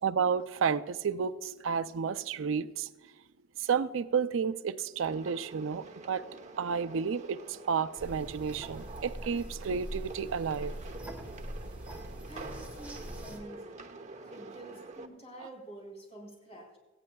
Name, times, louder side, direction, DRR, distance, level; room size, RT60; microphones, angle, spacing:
voice 1, 0.0-2.9 3.6-6.2 6.6-10.8, right 6 dB, 70° right, 0.4 m, -31 dB
sound 1, 5.0-15.1, right 2 dB, 35° right, 1.0 m, -47 dB
sound 2, 8.0-13.4, right 1 dB, 10° right, 1.9 m, -43 dB
voice 2, 12.3-16.8, right 1 dB, 30° left, 4.3 m, -49 dB
18.5 x 15.0 x 2.3 m
head